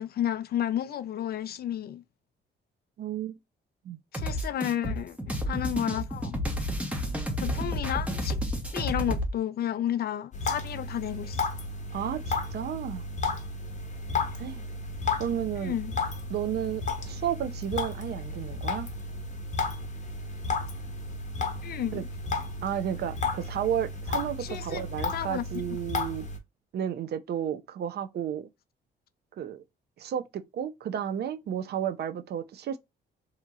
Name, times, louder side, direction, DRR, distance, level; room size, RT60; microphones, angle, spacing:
voice 1, 0.0-2.0 4.1-6.4 7.4-8.4 8.7-11.5 15.6-15.9 21.6-22.1 24.4-25.8, left 11 dB, 50° left, 0.4 m, -32 dB
voice 2, 3.0-3.4 3.8-4.0 11.9-13.0 14.3-14.6 15.2-15.7 16.3-18.9 21.9-22.0 22.6-26.3 26.7-28.5 29.4-29.6 30.0-32.8, right 9 dB, 55° right, 0.4 m, -32 dB
sound 1, 4.1-9.3, equal, 5° right, 0.7 m, -31 dB
sound 2, 10.3-26.4, left 3 dB, 35° left, 0.8 m, -33 dB
2.8 x 2.7 x 2.3 m
cardioid pair, 90°, 20 cm